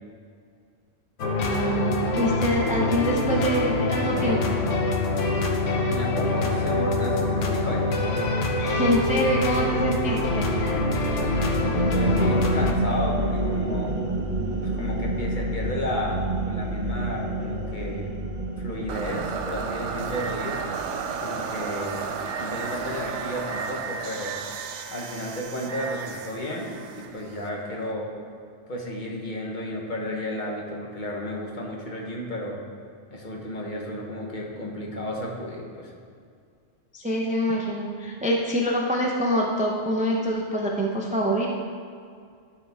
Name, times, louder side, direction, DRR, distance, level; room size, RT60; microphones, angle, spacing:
sound 1, 1.2-12.7, left 2 dB, 70° left, 1.1 m, -25 dB
voice 1, 1.4-4.6 8.6-10.9 36.9-41.5, equal, 10° right, -1 dB, 0.5 m, -25 dB
voice 2, 5.7-8.2 11.9-14.0 14.6-18.1 18.6-20.6 21.1-24.4 24.9-28.2 28.7-32.6 33.1-35.9, left 1 dB, 40° left, -1 dB, 1.2 m, -33 dB
sound 2, 7.4-21.4, right 1 dB, 45° right, 0.8 m, -29 dB
sound 3, 18.9-27.9, right 6 dB, 75° right, 0.9 m, -33 dB
12.5 x 4.8 x 3.5 m, 2.2 s
omnidirectional pair, 1.3 m